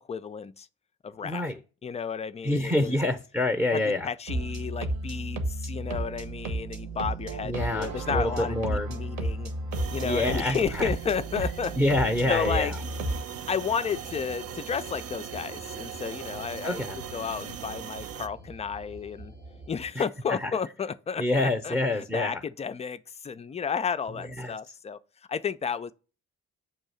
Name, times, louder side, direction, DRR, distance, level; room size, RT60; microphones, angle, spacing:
voice 1, 0.1-0.7 1.0-1.4 1.8-3.0 3.7-9.5 9.9-11.7 12.3-12.7 13.5-19.3 19.7-25.0 25.3-25.9, left 6 dB, 20° left, 0.3 m, -32 dB
voice 2, 1.2-1.6 2.4-4.1 7.4-8.9 10.0-10.9 11.4-11.5 11.8-12.8 16.6-17.0 20.0-20.5 21.2-22.4 24.2-24.6, left 1 dB, 5° right, 0.7 m, -27 dB
sound 1, 4.3-13.2, right 2 dB, 60° right, 1.2 m, -33 dB
sound 2, 5.8-19.9, right 1 dB, 90° right, 2.0 m, -49 dB
sound 3, 9.7-18.3, right 9 dB, 40° right, 0.5 m, -40 dB
7.2 x 2.6 x 5.5 m
hypercardioid pair, 45°, 38 cm